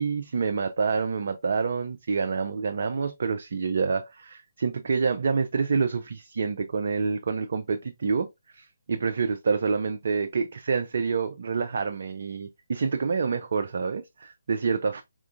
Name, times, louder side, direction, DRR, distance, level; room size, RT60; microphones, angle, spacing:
voice 1, 0.0-8.3 8.5-15.0, right 5 dB, 50° right, 0.4 m, -27 dB
4.4 x 3.6 x 2.3 m
figure-of-eight pair, 140°, 0 cm